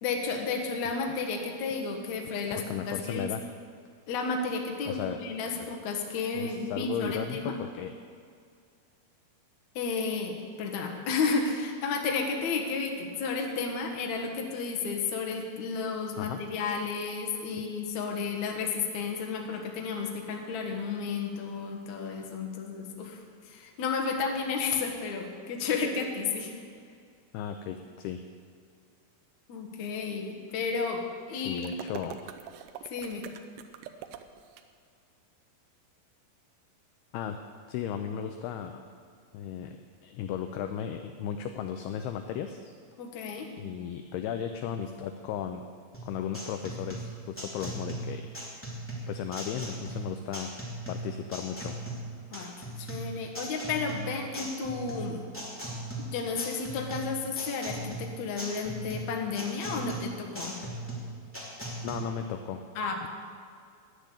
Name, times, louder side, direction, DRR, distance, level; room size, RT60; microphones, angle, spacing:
voice 1, 0.0-3.3 4.1-7.5 9.8-23.2 23.5-26.5 29.5-31.0 31.3-31.7 32.8-33.2 43.0-43.5 52.3-55.3 56.0-60.6 62.8-63.1, left 4 dB, 65° left, 2 dB, 1.9 m, -32 dB
voice 2, 2.6-3.4 4.9-5.2 5.5-5.7 6.4-7.9 16.2-16.4 27.3-28.2 31.3-32.2 37.1-37.4 37.7-38.8 39.3-42.7 43.6-45.6 46.0-48.2 49.1-50.5 50.9-51.7 61.8-62.6, left 8 dB, 85° left, 7 dB, 2.3 m, -35 dB
sound 1, 31.6-34.6, right 10 dB, 80° right, 2.6 m, -43 dB
sound 2, 45.9-61.9, right 1 dB, 5° left, 1.7 m, -38 dB
10.0 x 10.0 x 8.3 m, 2.2 s
omnidirectional pair, 5.2 m